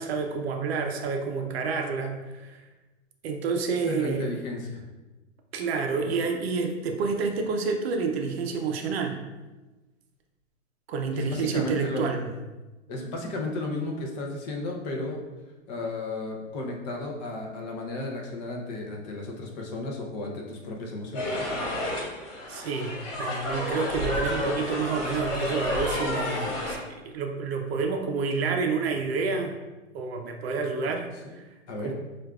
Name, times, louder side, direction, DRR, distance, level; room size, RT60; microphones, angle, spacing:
voice 1, 0.0-2.6 3.2-4.3 5.5-9.2 10.9-12.3 22.5-26.8 27.1-29.6 29.9-31.1 31.3-31.5 31.8-31.9, right 4 dB, 50° right, 4 dB, 0.6 m, -29 dB
voice 2, 3.8-4.8 11.2-12.0 12.9-15.2 15.7-21.3 31.2-31.4 31.7-31.9, left 2 dB, 35° left, 0 dB, 0.6 m, -34 dB
sound 1, 21.1-26.8, left 1 dB, 65° left, 1.5 m, -30 dB
6.0 x 2.5 x 2.3 m, 1.1 s
hypercardioid pair, 140°, 39 cm